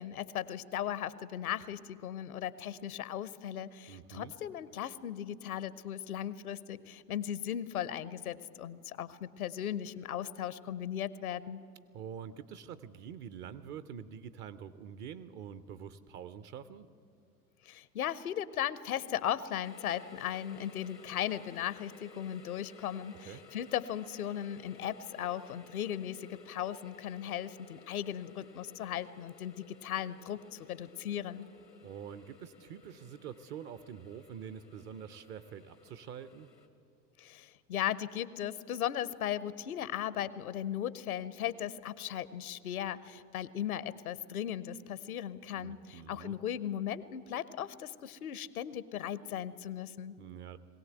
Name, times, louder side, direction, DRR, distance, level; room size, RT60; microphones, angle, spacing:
voice 1, 0.0-11.6 17.6-31.4 37.2-50.1, left 10 dB, 65° left, 17 dB, 0.9 m, -37 dB
voice 2, 3.9-4.3 11.9-16.9 23.3-23.4 31.8-36.5 45.5-46.3 50.2-50.6, right 8 dB, 25° right, 14 dB, 0.5 m, -46 dB
sound 1, 19.6-36.7, left 4 dB, 90° left, 2.1 m, -57 dB
21.5 x 17.0 x 7.9 m, 2.5 s
figure-of-eight pair, 90°, 47 cm